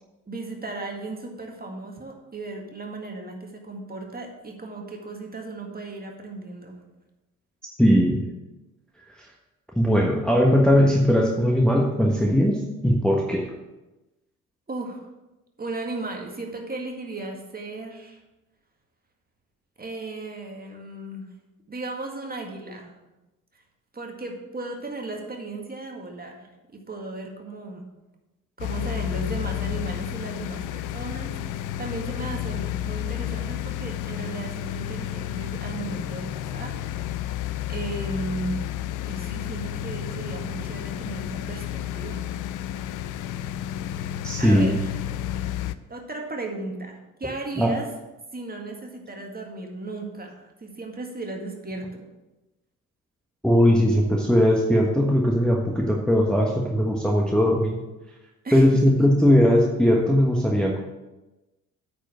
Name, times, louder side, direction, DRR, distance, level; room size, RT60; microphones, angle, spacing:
voice 1, 0.3-6.8 14.7-15.0 15.6-18.2 19.8-21.3 21.7-23.0 23.9-27.8 28.6-36.8 37.7-38.6 39.1-42.2 44.4-44.9 45.9-47.9 48.3-52.1 58.4-59.2, right 2 dB, 20° right, 2 dB, 1.9 m, -35 dB
voice 2, 7.8-8.2 9.7-13.5 44.2-44.8 47.6-47.7 53.4-57.8 58.5-60.8, equal, ahead, -2 dB, 1.3 m, -19 dB
sound 1, 28.6-45.7, left 12 dB, 45° left, 0.5 m, -31 dB
8.9 x 4.9 x 6.3 m, 1.0 s
figure-of-eight pair, 50°, 43 cm